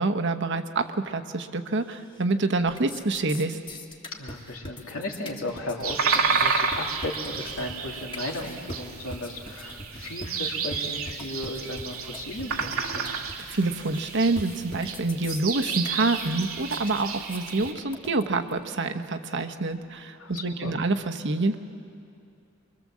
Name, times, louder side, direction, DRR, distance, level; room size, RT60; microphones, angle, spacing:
voice 1, 0.0-3.6 13.4-21.6, right 3 dB, 60° right, 7 dB, 1.1 m, -27 dB
sound 1, 1.9-2.3 2.6-18.6, left 1 dB, 25° left, 1.7 m, -42 dB
voice 2, 4.2-13.1 20.2-20.8, left 2 dB, 85° left, 0 dB, 2.9 m, -35 dB
sound 2, 5.8-17.7, right 5 dB, 85° right, 1.6 m, -31 dB
24.0 x 23.0 x 7.5 m, 2.5 s
head